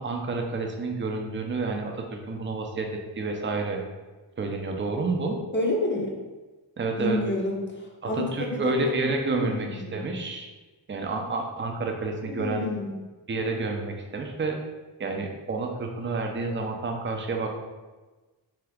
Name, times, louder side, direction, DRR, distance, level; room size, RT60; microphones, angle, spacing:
voice 1, 0.0-2.9 3.2-3.8 4.4-5.4 6.8-7.2 8.0-10.5 10.9-12.6 13.3-14.6 15.0-17.5, right 3 dB, 30° right, 2 dB, 0.4 m, -29 dB
voice 2, 5.5-6.1 7.0-8.8 9.3-10.0 12.3-13.0, left 1 dB, 25° left, 0 dB, 0.6 m, -29 dB
2.8 x 2.3 x 3.4 m, 1.2 s
wide cardioid pair, 90°, 44 cm